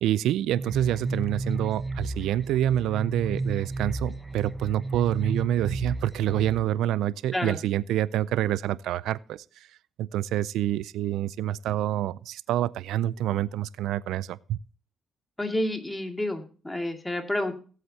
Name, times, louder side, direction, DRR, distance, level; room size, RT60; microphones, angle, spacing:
voice 1, 0.0-9.4 10.0-14.6, right 12 dB, 85° right, 0.4 m, -27 dB
sound 1, 0.5-6.6, right 2 dB, 5° right, 1.1 m, -33 dB
voice 2, 15.4-17.5, left 1 dB, 10° left, 2.2 m, -29 dB
18.0 x 8.0 x 2.8 m
cardioid pair, 90°, 0 cm